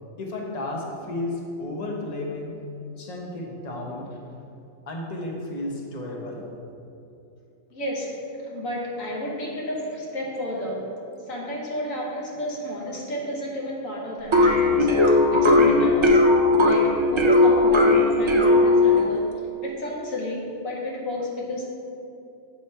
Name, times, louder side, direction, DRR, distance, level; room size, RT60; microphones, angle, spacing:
voice 1, 0.2-2.5 3.0-4.1 4.9-6.5, left 2 dB, 35° left, -1 dB, 0.9 m, -33 dB
voice 2, 7.7-11.0 11.2-16.3 16.6-21.8, left 1 dB, 80° left, -3 dB, 1.5 m, -31 dB
sound 1, 14.3-19.1, left 2 dB, 45° right, 0.3 m, -17 dB
8.0 x 3.1 x 5.5 m, 2.7 s
omnidirectional pair, 1.4 m